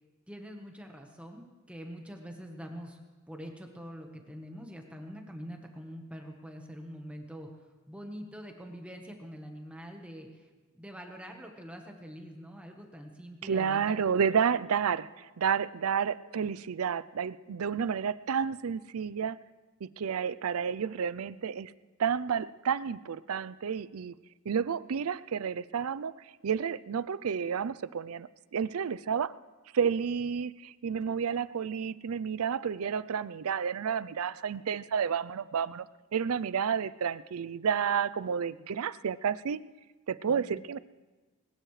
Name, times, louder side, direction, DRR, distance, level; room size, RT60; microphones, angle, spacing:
voice 1, 0.3-3.0 3.3-10.5 10.7-14.0 17.5-17.6 40.2-40.6, equal, 5° right, 2 dB, 1.2 m, -45 dB
voice 2, 13.4-19.4 19.8-21.7 22.0-24.1 24.5-29.3 29.7-35.9 36.1-39.6 40.1-40.8, right 7 dB, 90° right, 18 dB, 0.5 m, -31 dB
21.0 x 20.0 x 3.3 m, 1.3 s
head